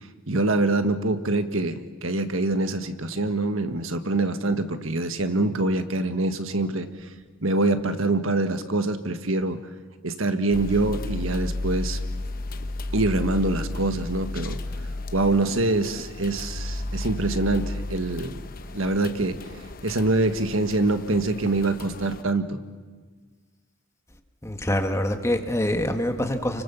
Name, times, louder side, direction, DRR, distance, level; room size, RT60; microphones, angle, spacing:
voice 1, 0.3-6.9 7.4-9.6 10.0-12.0 12.9-14.6 15.1-18.4 18.7-19.4 19.8-22.6, right 2 dB, 75° right, 9 dB, 1.6 m, -25 dB
sound 1, 10.5-22.2, left 2 dB, 45° left, 1.1 m, -33 dB
voice 2, 24.4-26.6, left 1 dB, 15° left, 5 dB, 1.6 m, -25 dB
30.0 x 25.0 x 7.0 m, 1.4 s
head